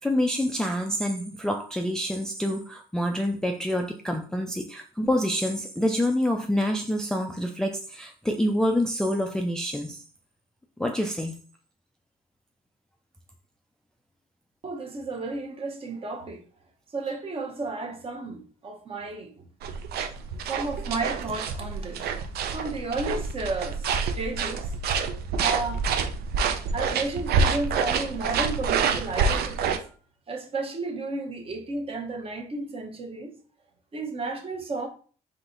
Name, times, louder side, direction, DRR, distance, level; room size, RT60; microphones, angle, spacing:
voice 1, 0.0-10.0 10.8-11.3, left 1 dB, 5° left, 0.4 m, -27 dB
voice 2, 14.6-16.4 16.9-19.5 20.4-22.1 22.5-24.7 25.4-26.3 26.7-29.9 30.3-33.3 33.9-34.9, right 3 dB, 35° right, 0.9 m, -33 dB
sound 1, 19.6-29.8, right 5 dB, 70° right, 0.5 m, -27 dB
3.8 x 2.9 x 3.9 m
cardioid pair, 110°, 17 cm